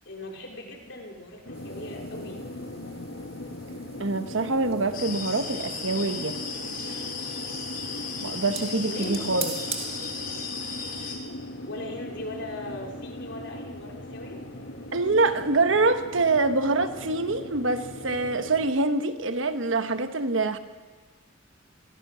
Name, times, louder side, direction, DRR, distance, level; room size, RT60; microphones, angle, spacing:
voice 1, 0.1-2.4 8.8-9.2 9.6-9.7 10.0-10.2 11.7-14.4, left 1 dB, 65° left, 1 dB, 3.5 m, -39 dB
sound 1, 1.4-18.7, left 1 dB, 80° left, 2.0 m, -39 dB
sound 2, 1.5-10.9, right 6 dB, 30° right, 2.1 m, -43 dB
voice 2, 4.0-6.4 8.2-9.5 14.9-20.6, right 3 dB, 70° right, 9 dB, 1.3 m, -25 dB
sound 3, 4.9-11.2, left 5 dB, 50° left, 4.3 m, -36 dB
25.5 x 17.0 x 6.3 m, 1.4 s
head